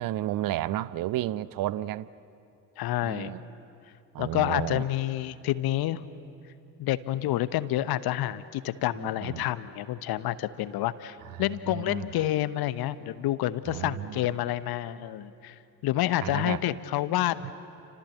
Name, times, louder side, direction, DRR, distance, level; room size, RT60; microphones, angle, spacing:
voice 1, 0.0-2.1 3.0-3.4 4.1-4.8 8.9-9.4 11.7-12.0 13.7-14.2 16.2-16.6 17.4-17.5, right 14 dB, 45° right, 18 dB, 0.7 m, -32 dB
voice 2, 2.8-3.3 4.2-6.1 6.8-15.5 15.8-17.5, left 14 dB, 50° left, 15 dB, 1.0 m, -28 dB
30.0 x 26.0 x 7.4 m, 2.7 s
figure-of-eight pair, 45°, 47 cm